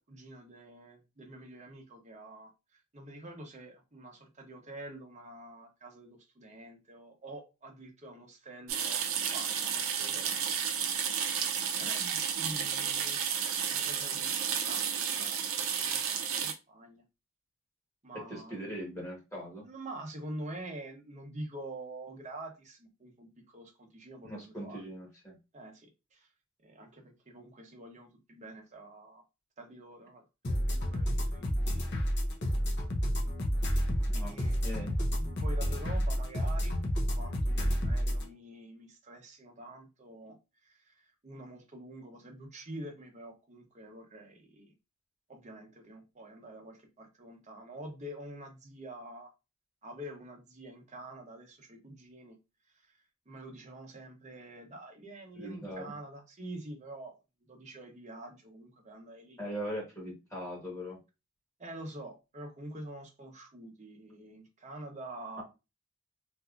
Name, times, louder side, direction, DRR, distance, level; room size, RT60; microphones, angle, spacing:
voice 1, 0.0-10.4 11.8-17.0 18.0-18.6 19.6-24.8 25.5-26.3 26.6-29.2 29.6-31.8 34.0-36.7 37.2-44.7 45.3-49.3 49.8-52.4 52.7-57.2 57.4-59.7 61.6-65.4, right 1 dB, 35° right, 2 dB, 0.9 m, -47 dB
sound 1, 8.7-16.5, right 7 dB, 80° right, 0.6 m, -32 dB
voice 2, 18.1-19.6 24.2-25.4 34.1-34.3 34.6-34.9 55.3-55.8 59.4-61.0 65.4-65.5, equal, 15° left, -3 dB, 1.3 m, -40 dB
sound 2, 30.4-38.2, equal, 55° left, 0.8 m, -30 dB
3.4 x 2.7 x 2.4 m, 0.26 s
head